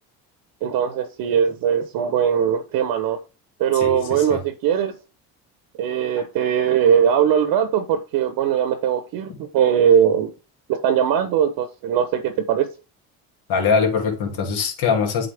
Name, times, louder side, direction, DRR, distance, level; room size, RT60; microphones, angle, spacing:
voice 1, 0.6-3.2 3.6-5.0 5.8-10.3 10.7-12.7, right 8 dB, 70° right, 1.1 m, -20 dB
voice 2, 3.7-4.4 9.3-9.4 13.5-15.3, left 5 dB, 70° left, 2.5 m, -22 dB
8.1 x 4.1 x 3.4 m
supercardioid pair, 85°, 39 cm